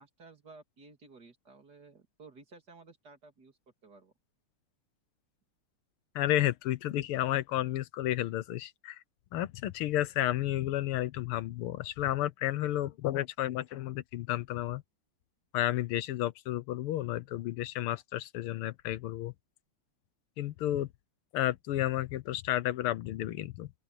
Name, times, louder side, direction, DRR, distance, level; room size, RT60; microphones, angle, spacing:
voice 1, 0.0-4.1, right 3 dB, 45° right, 3.3 m, -55 dB
voice 2, 6.1-9.0 9.3-14.8 15.5-19.3 20.4-20.9 21.3-23.7, left 13 dB, 80° left, 1.7 m, -32 dB
open air
omnidirectional pair, 2.4 m